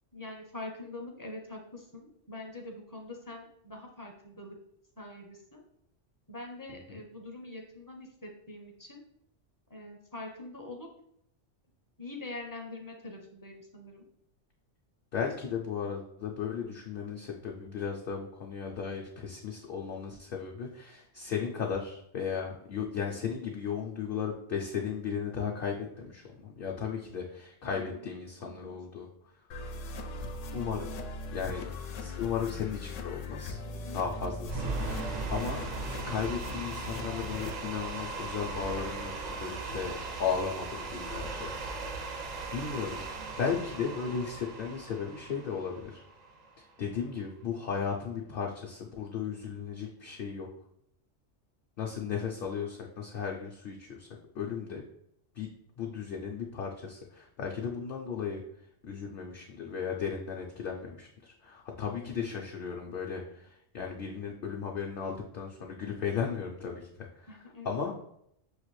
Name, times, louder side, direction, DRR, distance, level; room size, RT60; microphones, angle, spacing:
voice 1, 0.1-4.5 5.0-5.6 6.3-9.0 9.7-10.9 12.0-14.0 27.6-28.0 28.4-28.8 67.3-67.8, left 2 dB, 20° left, 1 dB, 0.5 m, -44 dB
voice 2, 15.1-29.1 30.5-30.9 31.3-31.7 32.0-33.6 33.9-34.7 35.3-35.7 36.1-41.5 41.8-41.9 42.5-43.0 43.4-46.0 46.6-50.5 51.8-54.1 54.3-54.8 55.4-55.5 55.8-58.4 58.9-67.9, left 6 dB, 60° left, -1 dB, 0.7 m, -35 dB
sound 1, 29.5-37.5, left 2 dB, 85° left, 0.9 m, -39 dB
sound 2, 34.4-46.6, right 3 dB, 60° right, 0.4 m, -38 dB
6.5 x 2.4 x 3.1 m, 0.72 s
omnidirectional pair, 1.3 m